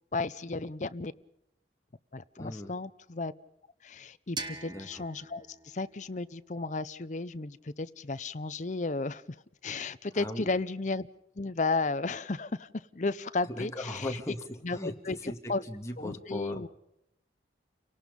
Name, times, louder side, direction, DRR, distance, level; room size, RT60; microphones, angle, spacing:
voice 1, 0.1-1.1 2.1-3.3 3.8-9.2 9.6-11.1 11.4-14.1 14.6-15.6 16.0-16.7, left 3 dB, 45° left, 13 dB, 0.7 m, -34 dB
voice 2, 2.4-2.7 4.6-5.0 10.1-10.5 13.5-16.7, left 1 dB, 15° left, 3 dB, 2.2 m, -38 dB
sound 1, 4.4-7.2, right 3 dB, 25° right, 1.5 m, -44 dB
30.0 x 18.0 x 5.4 m, 0.79 s
head